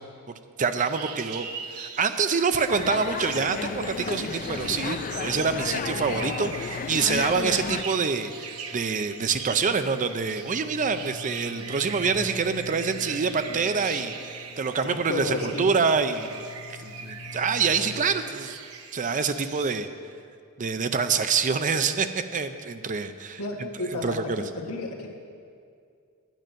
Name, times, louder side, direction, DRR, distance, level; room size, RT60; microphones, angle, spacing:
voice 1, 0.6-1.5 1.7-18.6 18.9-19.9 20.6-23.7 24.0-24.4, right 5 dB, 35° right, 9 dB, 0.5 m, -26 dB
sound 1, 0.8-19.8, right 6 dB, 75° right, 0.9 m, -41 dB
sound 2, 2.6-18.0, left 3 dB, 15° right, 3.6 m, -44 dB
sound 3, 2.7-7.8, left 5 dB, 40° left, 0.3 m, -32 dB
voice 2, 14.8-15.7 23.4-25.1, left 2 dB, 75° left, 1 dB, 1.5 m, -32 dB
10.5 x 9.1 x 6.3 m, 2.2 s
head